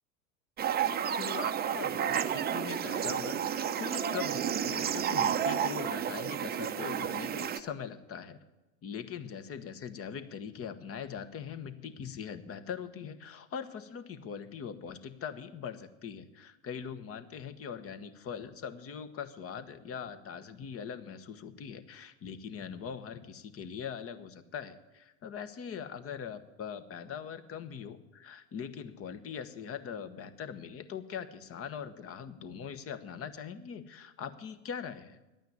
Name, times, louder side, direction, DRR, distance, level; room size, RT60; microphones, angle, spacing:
sound 1, 0.6-7.6, right 9 dB, 25° right, 0.7 m, -31 dB
voice 1, 1.1-8.4 8.8-35.2, left 7 dB, 35° left, 11 dB, 1.2 m, -41 dB
10.5 x 9.1 x 9.6 m, 1.0 s
hypercardioid pair, 95°, 41 cm